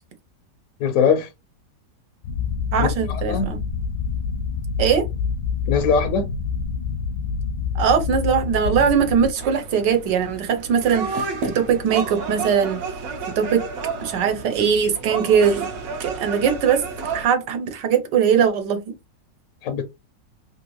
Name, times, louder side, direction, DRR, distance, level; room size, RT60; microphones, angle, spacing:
voice 1, 0.8-1.3 2.8-3.5 5.7-6.3 19.6-19.8, left 6 dB, 70° left, 0.8 m, -21 dB
sound 1, 2.2-9.3, left 5 dB, 85° left, 1.3 m, -27 dB
voice 2, 2.7-3.6 4.8-5.0 7.8-12.8 13.4-13.6 14.0-15.7 16.0-16.8 17.1-18.9, right 7 dB, 85° right, 1.4 m, -20 dB
sound 2, 9.4-17.2, right 4 dB, 70° right, 1.1 m, -31 dB
3.2 x 2.6 x 3.0 m
omnidirectional pair, 1.8 m